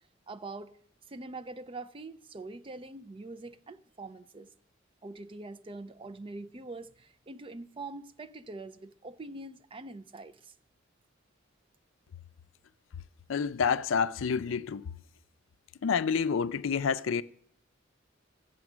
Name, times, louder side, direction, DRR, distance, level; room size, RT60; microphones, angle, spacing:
voice 1, 0.3-0.8 1.1-4.5 5.0-10.5, right 2 dB, 25° right, 0.5 m, -44 dB
voice 2, 13.3-14.9 15.8-17.2, left 6 dB, 90° left, 0.4 m, -28 dB
13.5 x 8.1 x 6.1 m
head